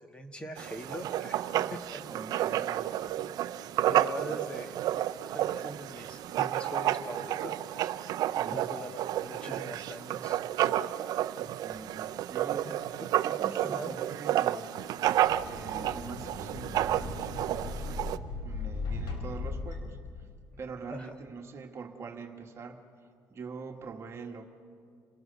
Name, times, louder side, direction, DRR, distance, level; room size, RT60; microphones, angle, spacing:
voice 1, 0.1-2.0 3.9-4.7 5.2-7.6 8.5-10.4 13.6-13.9 20.9-21.1, equal, 15° left, 6 dB, 1.5 m, -42 dB
Writing, 0.6-18.2, right 12 dB, 70° right, 0.6 m, -31 dB
voice 2, 2.1-3.4 8.3-8.6 11.3-12.8 13.2-14.7 15.4-18.1 18.4-20.0 20.6-22.8 23.3-24.4, right 5 dB, 40° right, 5 dB, 1.6 m, -44 dB
sound 1, 15.0-20.6, left 3 dB, 80° left, 4.3 m, -38 dB
28.0 x 18.5 x 6.8 m, 2.3 s
cardioid pair, 125°, 7 cm